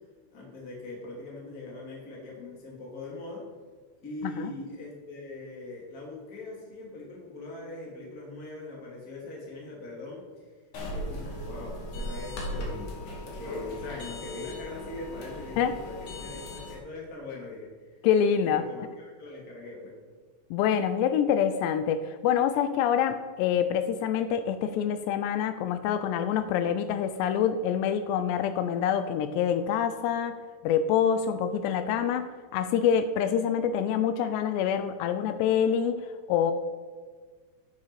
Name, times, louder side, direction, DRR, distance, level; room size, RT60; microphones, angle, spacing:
voice 1, 0.3-3.4 4.0-10.2 10.9-17.7 18.4-19.9, left 2 dB, 25° left, -3 dB, 2.4 m, -41 dB
sound 1, 10.7-16.8, left 1 dB, 50° left, 2.9 m, -38 dB
voice 2, 18.0-18.6 20.5-30.4 30.6-32.3 32.5-36.0 36.3-36.5, left 8 dB, 85° left, 10 dB, 2.7 m, -26 dB
11.0 x 9.7 x 4.8 m, 1.5 s
omnidirectional pair, 5.0 m